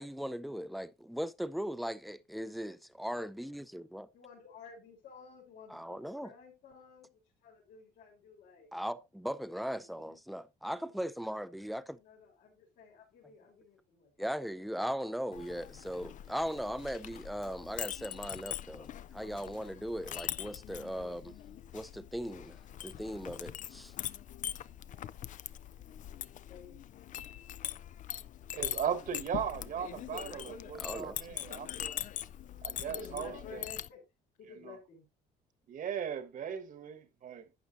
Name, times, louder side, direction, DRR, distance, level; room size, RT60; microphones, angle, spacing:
voice 1, 0.0-4.1 5.7-6.3 8.7-12.0 14.2-21.4 21.7-23.9 30.7-31.2, equal, ahead, 0.5 m, -38 dB
voice 2, 4.1-8.7 9.7-10.2 10.6-10.9 12.0-14.9 26.5-26.8 32.8-34.0 34.4-35.0, left 5 dB, 75° left, 3.9 m, -53 dB
Chink clink, 15.3-33.9, left 11 dB, 50° left, 0.5 m, -42 dB
voice 3, 28.5-31.9 32.6-33.6 34.6-34.8 35.7-37.4, right 8 dB, 55° right, 1.4 m, -38 dB
11.5 x 8.5 x 2.6 m
cardioid pair, 110°, 17 cm